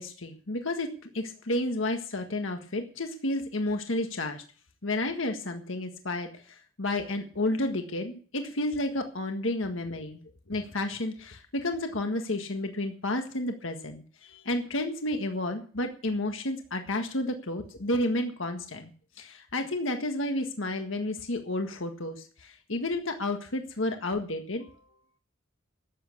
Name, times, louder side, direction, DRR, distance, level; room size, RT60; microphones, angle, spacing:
voice 1, 0.0-4.4 4.8-10.2 10.5-18.9 19.2-24.7, left 1 dB, 75° left, 5 dB, 1.7 m, -31 dB
13.0 x 8.6 x 8.3 m, 0.42 s
head